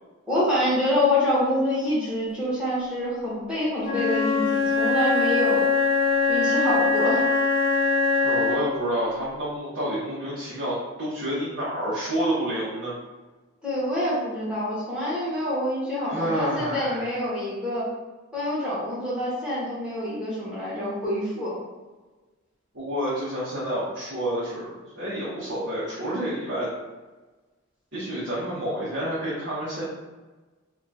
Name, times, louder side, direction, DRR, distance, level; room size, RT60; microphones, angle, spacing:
voice 1, 0.3-5.7 6.3-7.2 13.6-17.9 18.3-21.5, left 1 dB, 5° right, -10 dB, 1.1 m, -26 dB
Wind instrument woodwind instrument, 3.8-8.8, left 4 dB, 80° left, 0.8 m, -22 dB
voice 2, 8.2-12.9 16.1-17.0 22.7-26.7 27.9-29.8, right 1 dB, 60° right, -10 dB, 1.0 m, -29 dB
2.9 x 2.3 x 3.9 m, 1.2 s
head